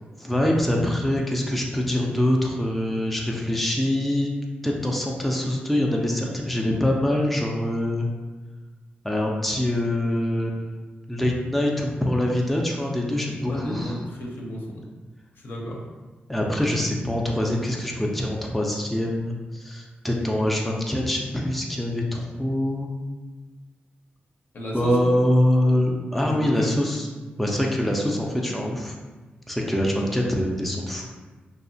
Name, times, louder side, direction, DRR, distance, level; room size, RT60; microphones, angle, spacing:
voice 1, 0.2-4.3 4.6-8.1 9.0-10.8 11.1-13.9 16.3-22.9 24.7-27.1 27.4-29.0 29.5-31.1, left 1 dB, ahead, -1 dB, 0.4 m, -24 dB
voice 2, 13.4-14.8 15.4-15.8 24.5-25.2 26.1-26.8, equal, 60° left, -2 dB, 0.6 m, -33 dB
2.8 x 2.0 x 2.6 m, 1.3 s
cardioid pair, 65°, 4 cm